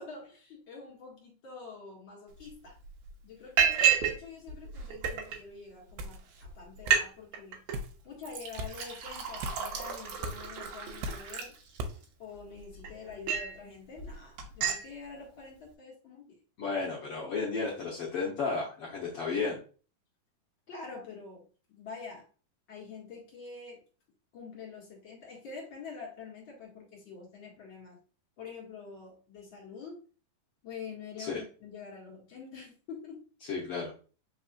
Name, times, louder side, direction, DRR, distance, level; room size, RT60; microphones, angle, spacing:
voice 1, 0.0-2.8 3.2-6.2 6.5-7.6 8.0-11.6 12.2-16.4 20.7-21.4 21.7-22.3 22.7-23.8 24.3-28.0 28.4-30.0 30.6-33.2, left 5 dB, 40° left, -2 dB, 2.3 m, -46 dB
Liquid, 2.4-2.5 2.8-3.1 3.6-4.2 4.5-5.4 6.0-6.1 6.4-6.5 6.8-7.1 7.3-7.8 8.2-12.0 12.6-13.6 14.0-14.1 14.4-14.8, right 8 dB, 70° right, 2.1 m, -30 dB
sound 1, 5.0-5.3 6.0-6.2 6.9-7.1 7.7-8.0 8.6-8.7 9.4-9.7 10.2-10.4 11.0-11.3 11.8-12.0, right 1 dB, 85° right, 2.5 m, -38 dB
voice 2, 16.6-19.6 31.2-31.4 33.5-33.9, left 4 dB, 80° left, -4 dB, 1.3 m, -33 dB
4.9 x 4.2 x 2.5 m, 0.37 s
omnidirectional pair, 4.1 m